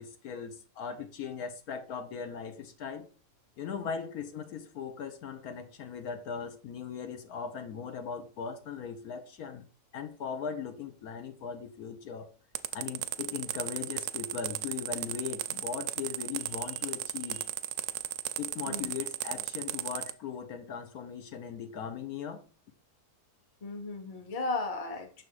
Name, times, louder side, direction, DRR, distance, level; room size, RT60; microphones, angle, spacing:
voice 1, 0.0-3.1 3.6-9.6 9.9-12.3 12.7-17.5 18.4-22.4, left 6 dB, 75° left, 1.2 m, -39 dB
sound 1, 12.6-20.1, right 12 dB, 70° right, 0.8 m, -34 dB
voice 2, 23.6-25.2, left 3 dB, 30° left, 0.8 m, -35 dB
6.2 x 3.6 x 4.7 m
omnidirectional pair, 1.6 m